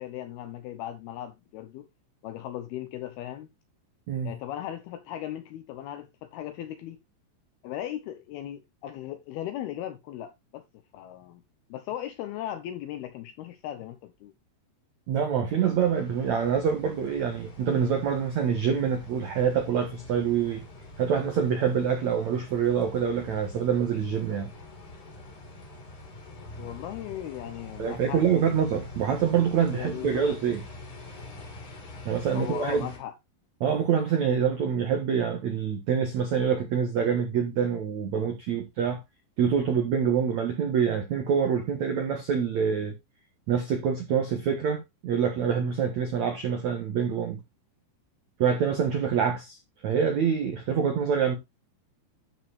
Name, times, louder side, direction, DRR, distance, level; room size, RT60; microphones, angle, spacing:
voice 1, 0.0-1.9 2.2-3.5 4.2-7.0 7.6-10.6 10.9-11.4 11.7-14.3 26.6-28.5 29.7-30.3 32.3-33.1, left 12 dB, 80° left, 2.3 m, -37 dB
voice 2, 15.1-20.6 21.0-24.5 27.8-30.6 32.0-32.9 33.6-39.0 39.4-42.9 43.5-47.4 48.4-49.6 49.8-51.4, right 7 dB, 70° right, 1.7 m, -26 dB
sound 1, 15.6-33.0, left 2 dB, 35° left, 2.8 m, -45 dB
12.5 x 5.1 x 3.4 m
omnidirectional pair, 5.4 m